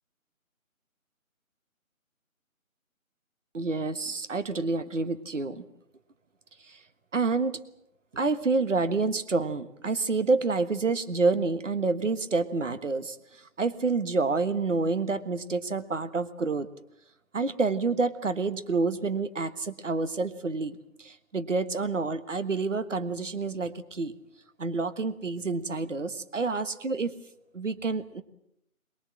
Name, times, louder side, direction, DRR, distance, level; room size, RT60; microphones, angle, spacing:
voice 1, 3.5-5.6 6.7-6.8 7.1-7.6 8.1-13.2 13.6-16.7 17.3-24.1 24.6-27.1 27.5-28.2, right 3 dB, 60° right, 11 dB, 1.5 m, -28 dB
23.0 x 21.0 x 7.6 m, 0.75 s
figure-of-eight pair, 165°, 42 cm